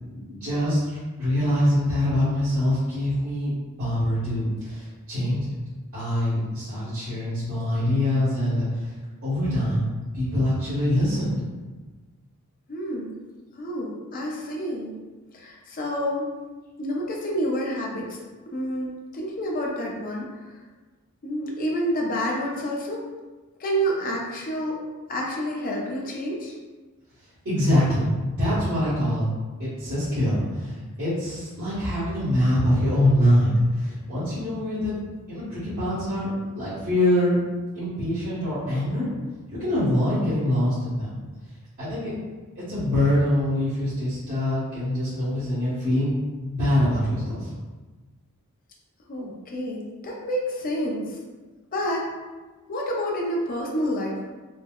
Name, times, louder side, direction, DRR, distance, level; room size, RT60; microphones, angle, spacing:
voice 1, 0.1-3.5 3.8-5.5 5.9-8.8 9.2-9.8 10.1-11.4 27.4-29.2 29.6-34.9 35.3-37.3 37.7-39.1 39.6-41.2 41.8-42.1 42.5-46.1 46.5-47.5, left 1 dB, 70° right, -15 dB, 1.4 m, -24 dB
voice 2, 12.7-13.2 13.6-15.0 15.3-16.3 16.8-18.2 18.5-20.3 21.2-23.0 23.6-24.8 25.1-26.5 49.1-51.2 51.7-52.1 52.7-54.2, equal, 40° left, -2 dB, 0.5 m, -28 dB
4.4 x 2.1 x 2.3 m, 1.3 s
head